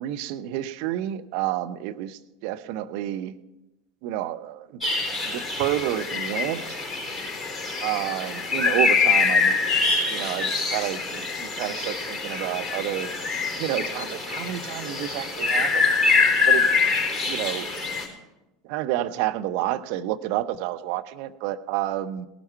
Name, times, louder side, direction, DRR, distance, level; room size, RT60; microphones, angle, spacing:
voice 1, 0.0-3.3 4.0-4.8 5.2-6.8 7.8-9.7 10.1-13.1 13.5-15.9 16.5-16.7 17.3-17.7 18.6-22.3, right 13 dB, 55° right, 10 dB, 0.6 m, -29 dB
sound 1, 4.8-18.1, left 4 dB, 5° left, 3.9 m, -24 dB
18.0 x 9.1 x 4.5 m, 0.97 s
figure-of-eight pair, 75°, 0 cm